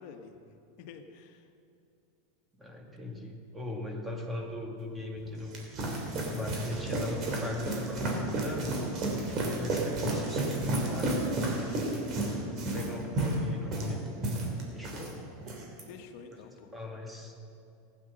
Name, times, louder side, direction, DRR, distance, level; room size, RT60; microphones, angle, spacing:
voice 1, 0.0-1.4 15.9-16.7, left 5 dB, 60° left, 6 dB, 1.4 m, -49 dB
voice 2, 2.6-5.6 6.3-8.8 9.4-11.1 12.1-14.1 14.7-15.2 16.7-17.3, left 2 dB, 10° right, 1 dB, 2.1 m, -39 dB
sound 1, 5.2-15.1 15.4-15.8, right 2 dB, 45° right, 3.1 m, -32 dB
15.0 x 9.5 x 6.5 m, 2.6 s
hypercardioid pair, 100°, 0 cm